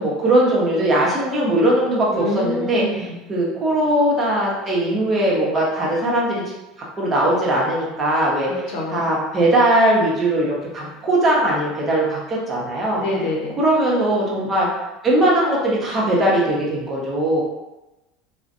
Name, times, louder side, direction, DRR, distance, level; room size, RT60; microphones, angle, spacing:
voice 1, 0.0-6.4 7.0-13.0 13.6-14.7 15.0-17.4, right 1 dB, 30° right, -4 dB, 0.9 m, -20 dB
voice 2, 2.1-3.2 8.5-9.1 12.9-13.6, left 2 dB, 65° left, -3 dB, 0.7 m, -26 dB
2.5 x 2.1 x 2.5 m, 1.0 s
hypercardioid pair, 75°, 0 cm